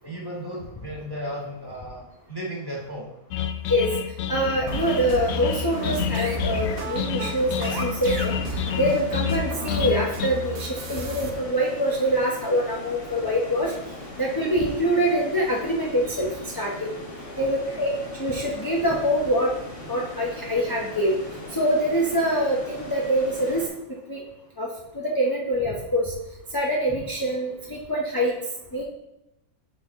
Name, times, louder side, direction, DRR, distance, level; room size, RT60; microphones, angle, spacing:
voice 1, 0.0-3.1 17.4-18.1, equal, 15° right, -3 dB, 1.3 m, -35 dB
sound 1, 3.3-10.3, left 9 dB, 70° left, 0.6 m, -29 dB
voice 2, 4.3-13.7 14.2-16.3 16.5-16.9 17.4-17.9 18.2-19.5 19.9-21.2 21.5-23.6 24.1-24.2 24.6-26.1 26.5-28.3 28.7-28.8, equal, 25° left, -3 dB, 0.5 m, -24 dB
sound 2, 4.7-11.3, right 5 dB, 65° right, 1.3 m, -34 dB
sound 3, 4.8-23.7, left 1 dB, 40° left, 1.4 m, -40 dB
6.3 x 6.2 x 3.6 m, 0.87 s
omnidirectional pair, 1.6 m